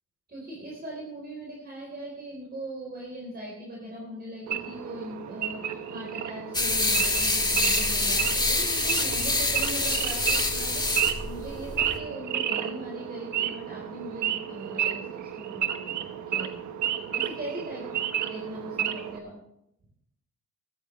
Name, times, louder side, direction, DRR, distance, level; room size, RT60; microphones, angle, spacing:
voice 1, 0.3-16.6 16.8-19.4, right 1 dB, 30° right, -2 dB, 4.0 m, -40 dB
Wild animals / Idling, 4.5-19.2, right 9 dB, 70° right, 1.2 m, -32 dB
sound 1, 6.5-12.0, left 2 dB, 15° left, 1.9 m, -26 dB
15.5 x 14.0 x 3.2 m, 0.79 s
cardioid pair, 90°, 30 cm